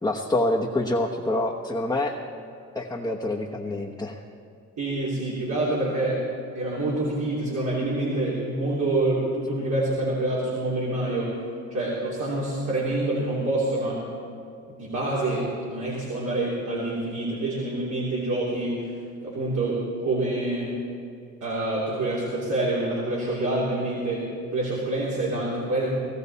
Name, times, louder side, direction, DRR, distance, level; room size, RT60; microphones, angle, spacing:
voice 1, 0.0-2.1 2.7-4.1, left 1 dB, 10° left, -3 dB, 1.1 m, -26 dB
voice 2, 4.8-6.2 6.5-11.3 11.7-14.0 14.8-18.9 19.2-20.7 21.4-24.3 24.5-25.9, right 2 dB, 70° right, -6 dB, 3.2 m, -26 dB
18.5 x 14.0 x 4.2 m, 2.4 s
cardioid pair, 90°, 30 cm